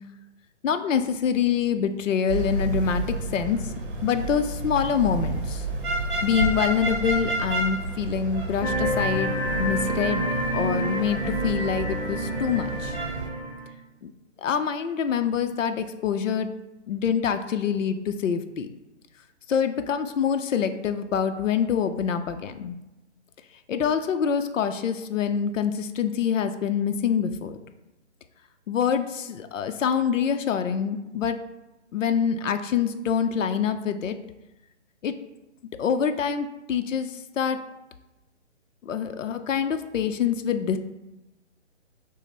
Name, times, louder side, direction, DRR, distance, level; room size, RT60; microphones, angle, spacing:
voice 1, 0.6-3.0 3.3-3.6 4.0-5.6 6.2-10.2 10.5-12.9 14.0-14.1 14.4-16.5 16.9-18.7 19.5-22.7 23.7-27.6 28.7-31.4 31.9-34.2 35.0-35.1 35.8-37.1 37.4-37.6 38.8-40.8, left 7 dB, 85° left, 8 dB, 0.5 m, -25 dB
sound 1, 2.3-13.3, right 2 dB, 45° right, 0.7 m, -30 dB
sound 2, 8.6-13.7, right 1 dB, 30° left, 1.3 m, -28 dB
5.9 x 2.1 x 4.2 m, 0.98 s
hypercardioid pair, 160°, 37 cm